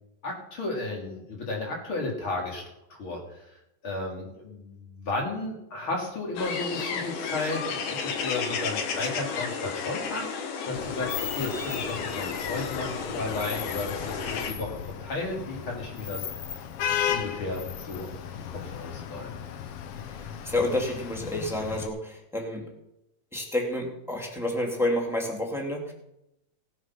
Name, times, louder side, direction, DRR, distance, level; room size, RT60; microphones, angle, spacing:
voice 1, 0.2-2.6 2.9-3.6 3.8-16.3 17.1-18.1 18.5-19.4, left 2 dB, 40° left, -1 dB, 3.8 m, -34 dB
sound 1, 6.4-14.5, left 6 dB, 65° left, 2.8 m, -32 dB
Vehicle horn car horn honking / Traffic noise roadway noise, 10.7-21.9, left 9 dB, 85° left, 1.3 m, -35 dB
voice 2, 20.1-22.7 23.3-25.9, left 1 dB, ahead, 0 dB, 2.0 m, -29 dB
18.5 x 7.9 x 6.1 m, 0.85 s
omnidirectional pair, 3.9 m